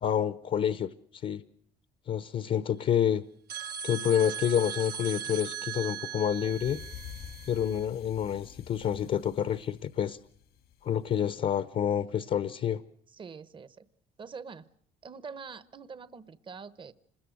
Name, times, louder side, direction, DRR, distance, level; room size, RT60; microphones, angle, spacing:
voice 1, 0.0-1.4 2.1-3.2 3.8-6.8 7.5-10.2 10.8-12.8, left 9 dB, 50° left, 14 dB, 0.9 m, -28 dB
sound 1, 3.5-7.8, right 8 dB, 70° right, 1.1 m, -38 dB
sound 2, 6.2-11.3, left 9 dB, 80° left, 2.1 m, -48 dB
voice 2, 13.1-13.9 14.2-14.7 15.0-16.9, right 5 dB, 30° right, 15 dB, 0.9 m, -44 dB
26.5 x 21.0 x 6.4 m, 0.64 s
cardioid pair, 110°, 17 cm